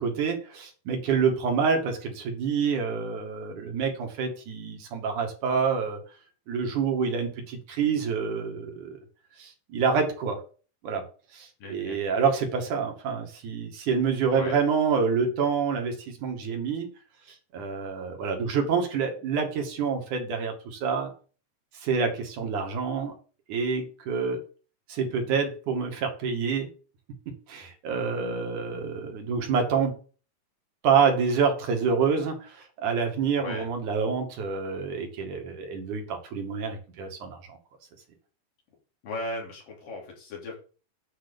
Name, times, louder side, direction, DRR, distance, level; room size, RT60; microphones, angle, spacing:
voice 1, 0.0-6.0 6.5-9.0 9.4-10.4 10.8-11.0 11.3-16.9 17.5-21.1 21.8-23.1 23.5-24.4 24.9-26.7 27.5-30.0 30.8-37.4, right 5 dB, 55° right, 3 dB, 3.3 m, -27 dB
voice 2, 11.6-12.0 14.3-14.6 33.4-33.7 39.0-40.6, left 1 dB, 55° left, 0 dB, 4.8 m, -37 dB
10.5 x 5.6 x 7.0 m, 0.37 s
omnidirectional pair, 4.7 m